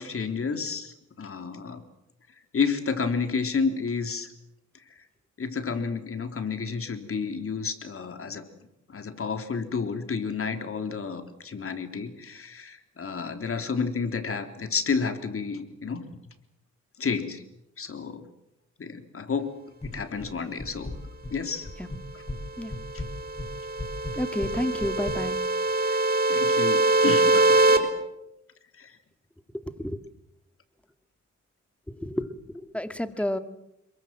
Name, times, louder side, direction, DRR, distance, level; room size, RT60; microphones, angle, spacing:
voice 1, 0.0-1.8 2.5-4.3 4.9-5.0 5.4-8.4 8.9-16.1 17.0-17.4 17.8-18.3 18.8-19.5 19.8-20.9 21.3-21.7 22.9-23.0 25.8-26.0 26.3-27.9 28.8-28.9, left 5 dB, 45° left, 7 dB, 3.6 m, -31 dB
sound 1, 19.8-20.3 20.6-21.4 21.6-22.4 22.7-25.2, left 2 dB, 20° left, 5.4 m, -36 dB
sound 2, 22.8-27.8, right 2 dB, 30° right, 4.0 m, -23 dB
voice 2, 24.1-25.4 29.5-30.0 31.9-33.4, left 1 dB, 5° left, 9 dB, 2.1 m, -30 dB
27.0 x 23.0 x 7.7 m, 0.84 s
cardioid pair, 80°, 30 cm